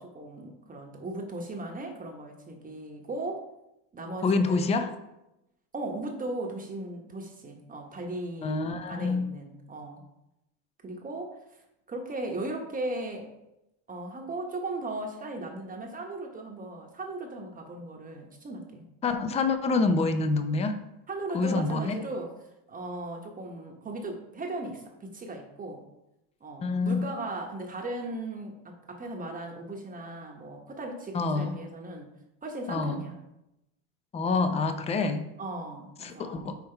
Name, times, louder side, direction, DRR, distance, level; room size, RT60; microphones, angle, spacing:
voice 1, 0.0-3.4 3.9-4.9 5.7-10.0 10.8-11.4 11.9-13.3 13.9-18.8 21.1-22.3 22.7-25.8 26.4-32.1 32.4-33.2 35.4-36.5, right 2 dB, 20° right, 2 dB, 1.0 m, -37 dB
voice 2, 4.2-5.0 8.4-9.3 19.0-20.8 21.3-22.0 26.6-27.0 31.1-31.6 32.7-33.1 34.1-35.2 36.0-36.6, left 3 dB, 15° left, 9 dB, 0.5 m, -27 dB
5.7 x 4.3 x 4.4 m, 0.88 s
supercardioid pair, 120°, 41 cm